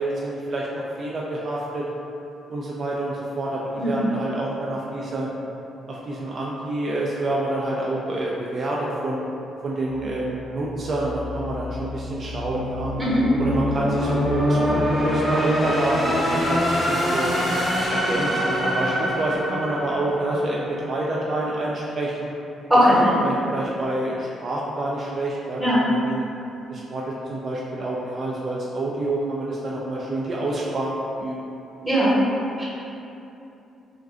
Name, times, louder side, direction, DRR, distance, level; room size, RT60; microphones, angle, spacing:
voice 1, 0.0-1.9 2.5-5.3 5.9-9.2 9.6-12.9 13.4-17.4 17.9-22.3 23.2-26.2 26.7-31.4, right 2 dB, 45° right, -4 dB, 0.3 m, -27 dB
sound 1, 9.9-20.9, equal, 15° left, 0.6 m, -25 dB
voice 2, 22.7-23.1 25.6-25.9 31.8-32.2 32.6-32.7, equal, 10° right, -9 dB, 1.0 m, -19 dB
2.4 x 2.2 x 3.6 m, 2.8 s
cardioid pair, 90°, 0 cm